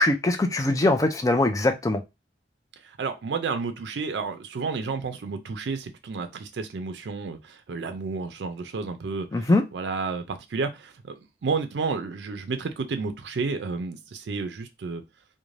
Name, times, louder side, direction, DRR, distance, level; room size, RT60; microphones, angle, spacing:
voice 1, 0.0-2.0 9.3-9.6, left 2 dB, 20° left, 0.3 m, -22 dB
voice 2, 2.8-15.0, right 4 dB, 75° right, 0.4 m, -31 dB
2.5 x 2.1 x 3.1 m
head